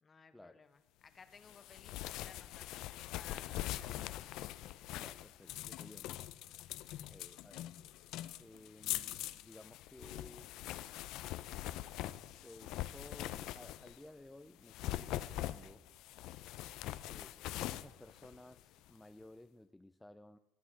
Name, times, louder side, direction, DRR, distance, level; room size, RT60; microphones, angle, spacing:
voice 1, 0.0-4.3 6.9-7.3, left 5 dB, 30° left, 10 dB, 1.3 m, -60 dB
sound 1, 1.4-14.1 14.6-18.9, left 14 dB, 70° left, 0.6 m, -43 dB
voice 2, 5.0-6.4 7.1-7.7 8.4-10.6 12.4-15.8 17.1-20.4, left 1 dB, 5° left, 8 dB, 0.5 m, -56 dB
13.0 x 9.2 x 7.4 m, 1.0 s
cardioid pair, 105°, 0 cm